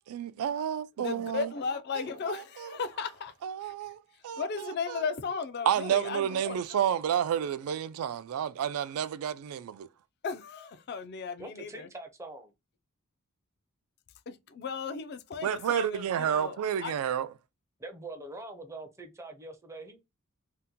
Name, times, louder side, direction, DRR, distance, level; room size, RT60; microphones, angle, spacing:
voice 1, 0.1-1.5 2.6-2.7 3.4-4.4 4.9-5.0 5.7-9.9 15.4-17.3, right 9 dB, 85° right, 0.3 m, -30 dB
voice 2, 1.0-3.3 3.6-3.7 4.1-6.6 10.2-11.9 14.3-16.9, left 5 dB, 50° left, 0.4 m, -36 dB
voice 3, 11.4-12.5 17.8-20.0, right 2 dB, 15° right, 0.4 m, -43 dB
2.8 x 2.1 x 3.6 m
head